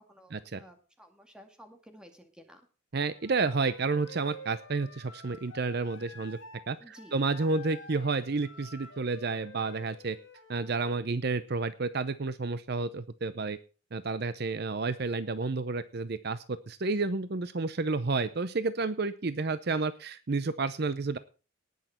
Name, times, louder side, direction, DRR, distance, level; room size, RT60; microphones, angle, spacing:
voice 1, 0.0-2.7 6.8-7.2, equal, 5° right, 4 dB, 2.1 m, -54 dB
voice 2, 2.9-6.4 6.7-10.2 10.5-13.6 13.9-21.2, right 3 dB, 50° right, 13 dB, 0.6 m, -30 dB
Wind instrument woodwind instrument, 3.1-6.7 6.9-10.8, left 1 dB, 65° left, 2.4 m, -49 dB
18.5 x 6.5 x 4.3 m, 0.34 s
head